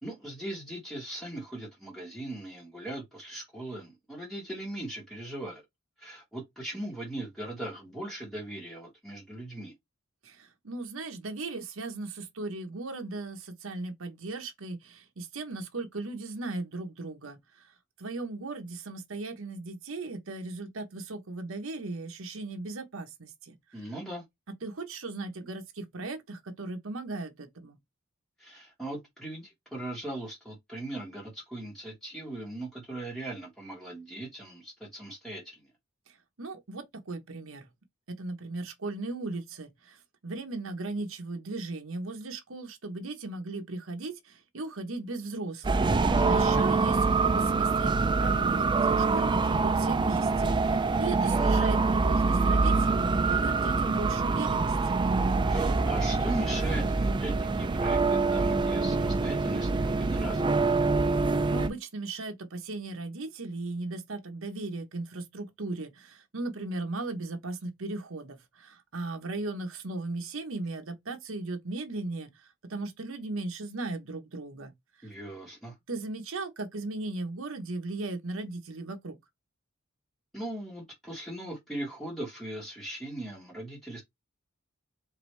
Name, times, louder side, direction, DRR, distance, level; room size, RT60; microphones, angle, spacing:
voice 1, 0.0-5.6 6.0-9.7 23.7-24.2 28.4-35.6 46.2-46.6 51.2-51.6 55.5-60.5 75.0-75.7 80.3-84.0, right 1 dB, ahead, 1.4 m, -39 dB
voice 2, 10.2-17.4 18.0-23.8 24.6-27.7 36.4-37.7 38.2-40.0 40.2-54.8 61.1-72.3 72.7-74.7 75.9-79.2, right 2 dB, 70° right, 1.0 m, -37 dB
sound 1, 45.6-61.7, right 3 dB, 20° right, 0.3 m, -25 dB
4.7 x 2.6 x 3.3 m
head